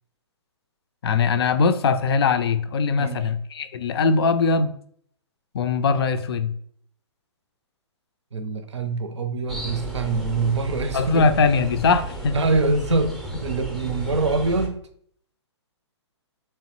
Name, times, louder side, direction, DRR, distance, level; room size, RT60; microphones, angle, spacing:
voice 1, 1.0-4.7 5.5-6.5 10.9-12.4, left 4 dB, 55° left, 0.4 m, -21 dB
voice 2, 3.0-3.3 8.3-11.3 12.3-14.8, right 3 dB, 75° right, 0.6 m, -24 dB
sound 1, 9.5-14.7, right 1 dB, ahead, 0.5 m, -33 dB
3.4 x 3.0 x 2.9 m
figure-of-eight pair, 125°, 15 cm